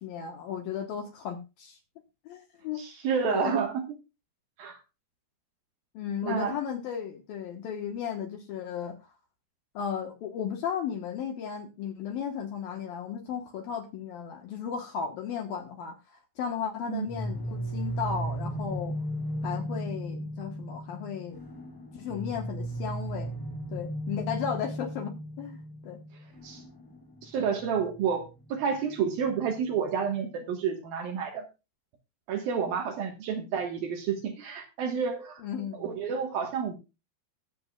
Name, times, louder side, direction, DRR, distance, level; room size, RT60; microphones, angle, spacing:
voice 1, 0.0-1.8 2.3-2.8 3.3-3.7 5.9-9.0 9.7-19.0 19.4-21.4 21.9-23.3 23.7-26.0 35.4-36.0, left 7 dB, 70° left, 4 dB, 2.4 m, -35 dB
voice 2, 2.8-3.8 4.6-4.8 6.2-6.6 16.9-17.1 26.4-26.6 27.2-31.5 32.3-35.4 35.7-36.7, right 6 dB, 65° right, 4 dB, 2.8 m, -30 dB
sound 1, 17.1-29.8, right 1 dB, 5° left, 5.1 m, -36 dB
21.5 x 7.8 x 2.3 m, 0.27 s
omnidirectional pair, 5.4 m